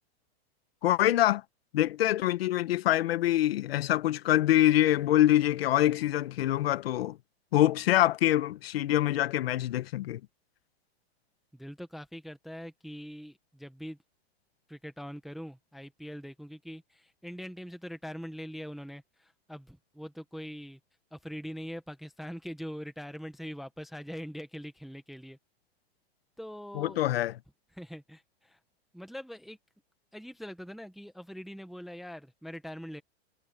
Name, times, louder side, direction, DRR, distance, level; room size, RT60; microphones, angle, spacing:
voice 1, 0.8-1.4 1.7-7.2 7.5-10.2 26.7-27.3, left 13 dB, 65° left, 0.9 m, -25 dB
voice 2, 11.5-14.0 14.7-20.8 21.1-25.4 26.4-27.0 27.7-28.6 28.9-29.6 30.1-33.0, equal, ahead, 0.6 m, -42 dB
supercardioid pair, 175°, 32 cm